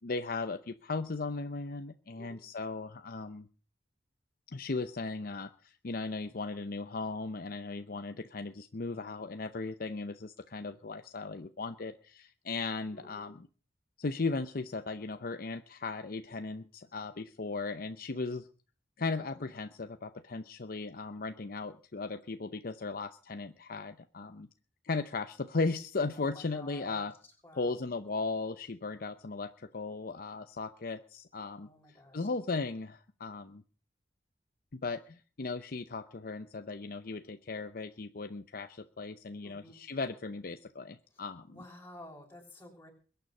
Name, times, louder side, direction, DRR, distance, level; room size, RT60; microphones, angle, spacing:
voice 1, 0.0-3.5 4.5-13.5 14.0-18.5 19.0-24.5 24.8-27.1 27.5-33.6 34.7-41.6, left 3 dB, 55° left, 9 dB, 0.7 m, -37 dB
voice 2, 12.9-13.3 26.2-27.1 27.4-27.8 31.6-32.3 39.4-39.8 41.5-42.9, left 1 dB, 15° left, -1 dB, 6.0 m, -52 dB
22.0 x 9.3 x 5.4 m, 0.40 s
head